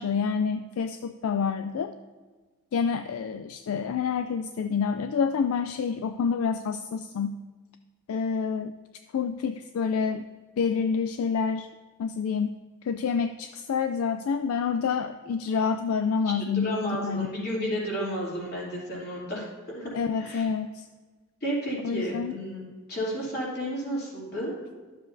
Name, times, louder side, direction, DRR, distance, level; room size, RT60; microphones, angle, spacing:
voice 1, 0.0-1.9 2.7-7.4 8.1-8.7 9.1-10.2 10.6-11.7 12.0-12.5 12.8-17.3 19.9-20.9 21.8-22.3, left 6 dB, 70° left, 9 dB, 0.3 m, -28 dB
voice 2, 16.6-19.9 20.2-20.4 21.4-24.5, equal, 45° left, -5 dB, 2.9 m, -32 dB
12.0 x 7.3 x 2.7 m, 1.4 s
head